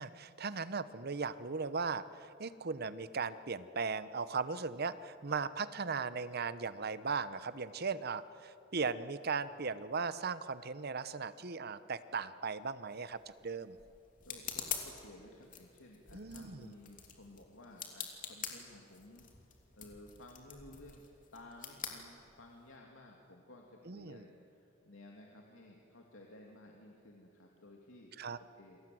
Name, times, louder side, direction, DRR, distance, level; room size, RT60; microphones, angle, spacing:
voice 1, 0.0-13.8 16.1-16.7 23.9-24.2 28.2-28.4, right 5 dB, 55° right, 14 dB, 0.9 m, -38 dB
sound 1, 12.9-22.8, left 7 dB, 45° left, 3.0 m, -46 dB
voice 2, 14.2-19.3 19.7-21.0 21.3-28.1 28.5-28.8, left 1 dB, 85° left, 0 dB, 2.7 m, -55 dB
29.0 x 24.0 x 7.9 m, 2.7 s
head